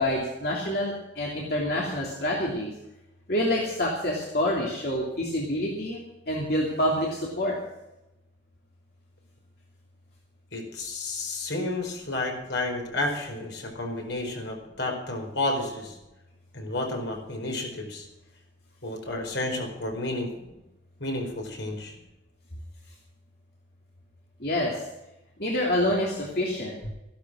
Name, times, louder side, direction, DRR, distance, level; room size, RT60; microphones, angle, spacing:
voice 1, 0.0-2.7 3.3-6.0 6.3-7.6 24.4-24.8 25.4-26.7, left 1 dB, 55° left, -2 dB, 2.9 m, -27 dB
voice 2, 10.5-16.0 16.5-18.1 18.8-20.3 21.0-21.9, left 2 dB, 75° left, 2 dB, 4.7 m, -31 dB
14.5 x 12.0 x 6.3 m, 0.92 s
head